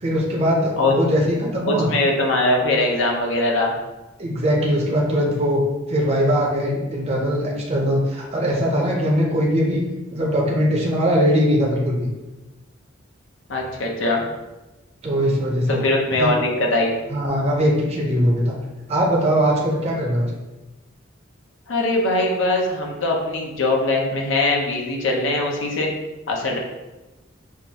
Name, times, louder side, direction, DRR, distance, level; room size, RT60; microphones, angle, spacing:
voice 1, 0.0-1.9 4.2-5.6 5.9-9.8 10.1-12.1 15.0-15.9 16.2-16.3 17.1-18.6 18.9-20.3, equal, 30° right, -2 dB, 0.7 m, -20 dB
voice 2, 1.7-3.7 13.5-14.2 15.7-16.9 21.7-25.9 26.3-26.6, left 2 dB, 70° left, 0 dB, 0.8 m, -21 dB
5.8 x 2.6 x 2.8 m, 1.1 s
head